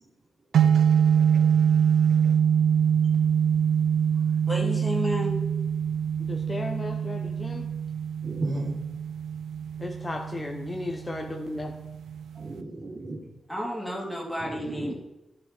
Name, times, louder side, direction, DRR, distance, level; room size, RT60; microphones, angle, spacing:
sound 1, 0.5-12.6, right 8 dB, 90° right, 0.5 m, -24 dB
voice 1, 4.5-5.4 13.5-14.9, equal, ahead, -2 dB, 2.8 m, -31 dB
voice 2, 6.3-7.7 9.8-11.7, left 2 dB, 30° left, 2 dB, 0.9 m, -35 dB
voice 3, 8.2-8.8 12.3-13.2 14.4-14.9, right 2 dB, 50° right, -2 dB, 3.0 m, -34 dB
11.5 x 5.9 x 4.4 m, 0.93 s
cardioid pair, 85°, 0 cm